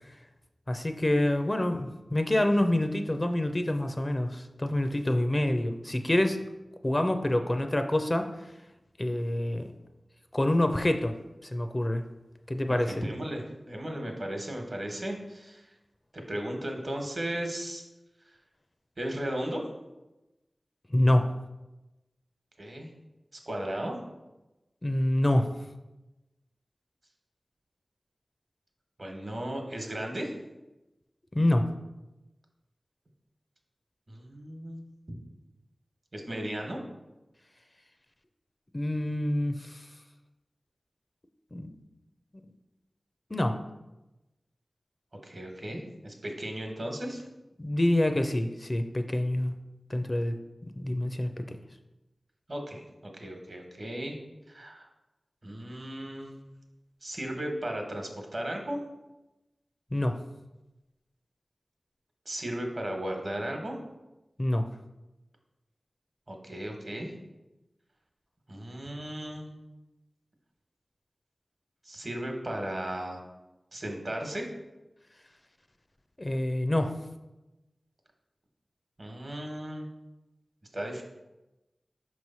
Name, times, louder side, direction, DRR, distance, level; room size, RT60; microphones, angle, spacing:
voice 1, 0.7-6.4 6.8-8.3 9.0-9.7 10.3-11.1 11.5-12.0 12.5-12.9 20.9-21.3 24.8-25.5 31.3-31.7 38.7-39.8 41.5-41.7 43.3-43.6 47.6-49.5 49.9-50.3 50.8-51.3 59.9-60.2 64.4-64.7 76.2-77.0, left 1 dB, 35° left, 7 dB, 0.5 m, -26 dB
voice 2, 12.7-15.6 16.1-17.8 19.0-19.6 22.6-22.9 23.5-24.0 29.0-30.3 34.1-35.2 36.1-36.8 45.2-47.2 52.5-52.8 53.2-54.2 54.5-54.9 55.4-56.4 57.0-58.8 62.2-63.8 66.3-67.1 68.5-69.6 71.9-73.2 73.7-74.5 79.0-79.9 80.7-81.0, right 1 dB, 55° right, 2 dB, 1.1 m, -35 dB
5.5 x 3.1 x 5.5 m, 1.0 s
wide cardioid pair, 45°, 0 cm